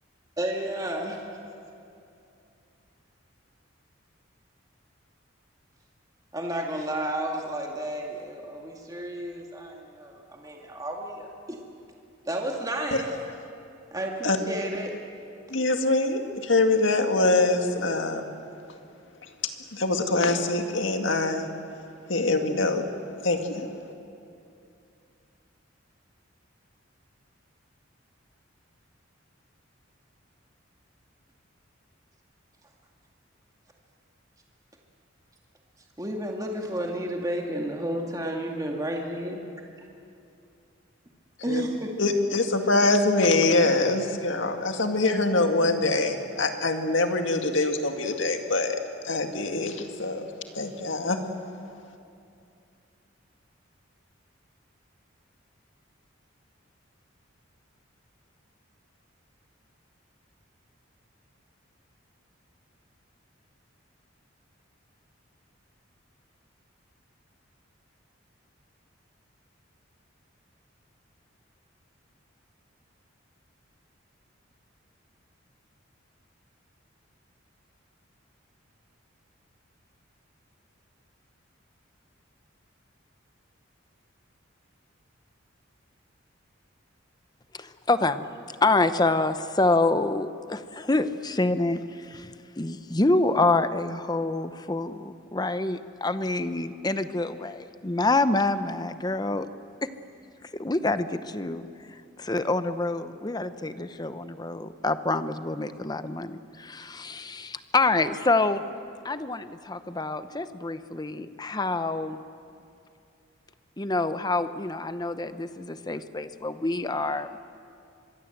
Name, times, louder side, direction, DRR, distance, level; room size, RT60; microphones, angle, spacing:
voice 1, 0.4-1.2 6.3-11.6 12.3-13.1 13.9-14.9 36.0-39.4 41.4-41.9, right 1 dB, 20° right, 0 dB, 2.1 m, -32 dB
voice 2, 15.5-18.3 19.7-21.5 22.1-22.9 23.2-23.7 41.5-41.6 42.0-48.8 49.0-51.2, left 2 dB, 70° left, 5 dB, 2.0 m, -24 dB
voice 3, 87.6-88.3 88.6-91.8 92.1-92.3 92.6-99.5 100.6-101.7 102.2-108.6 109.0-112.2 113.8-117.4, left 2 dB, 20° left, 11 dB, 0.8 m, -26 dB
25.0 x 22.0 x 8.0 m, 2.6 s
head